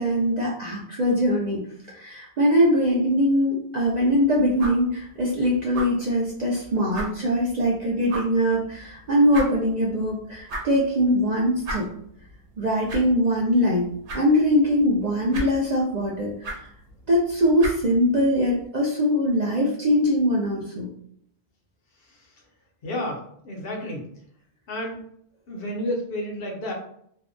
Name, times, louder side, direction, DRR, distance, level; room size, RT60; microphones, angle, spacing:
voice 1, 0.0-1.6 1.9-11.9 12.6-13.9 14.1-16.7 17.1-20.9, equal, 55° right, -4 dB, 0.5 m, -22 dB
sound 1, 3.8-18.6, right 1 dB, 80° right, 1.0 m, -39 dB
voice 2, 22.0-22.3 22.8-24.1 24.7-25.0 25.5-26.7, left 1 dB, 60° left, 0 dB, 0.8 m, -31 dB
2.6 x 2.1 x 2.5 m, 0.68 s
omnidirectional pair, 1.2 m